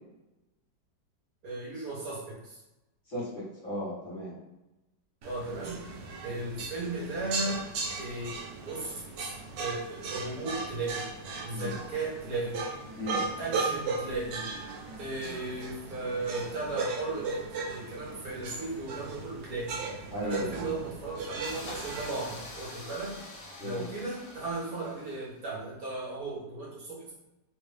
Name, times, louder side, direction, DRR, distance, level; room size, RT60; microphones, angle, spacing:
voice 1, 1.4-2.6 5.2-5.8 6.2-7.6 8.0-8.3 8.6-11.1 11.4-12.6 13.4-14.5 15.0-19.8 20.2-23.2 23.6-27.1, right 2 dB, 60° right, -5 dB, 1.4 m, -36 dB
voice 2, 3.1-4.3 11.5-11.7 13.0-13.2 15.2-15.4 20.1-20.7 23.6-23.9, equal, 45° left, -8 dB, 1.6 m, -36 dB
sound 1, 5.2-22.4, right 4 dB, 90° right, 1.3 m, -37 dB
sound 2, 10.1-18.3, equal, 20° right, 0.8 m, -52 dB
sound 3, 21.4-25.5, left 1 dB, 75° left, 1.6 m, -45 dB
3.6 x 2.5 x 3.3 m, 1.0 s
omnidirectional pair, 1.9 m